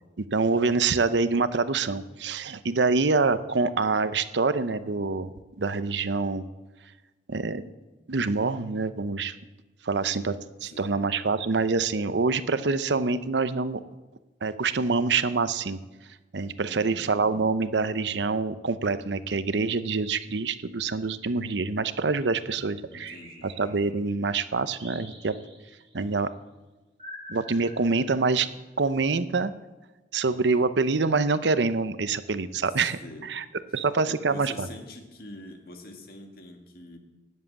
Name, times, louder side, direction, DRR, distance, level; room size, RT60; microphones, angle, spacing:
voice 1, 0.3-6.5 7.3-7.6 8.1-9.3 9.8-10.4 10.6-13.8 14.4-15.8 16.3-23.1 23.4-25.3 25.9-26.3 27.3-28.5 28.8-29.5 30.1-33.4 33.7-34.7, right 4 dB, 80° right, 13 dB, 0.7 m, -26 dB
voice 2, 16.6-17.0 22.9-23.5 32.8-33.4 33.7-33.8 34.1-37.0, left 2 dB, 55° left, 4 dB, 1.9 m, -44 dB
sound 1, 23.0-24.1 24.8-25.9 27.0-28.5, equal, 30° right, 5.8 m, -46 dB
19.0 x 7.6 x 7.1 m, 1.2 s
head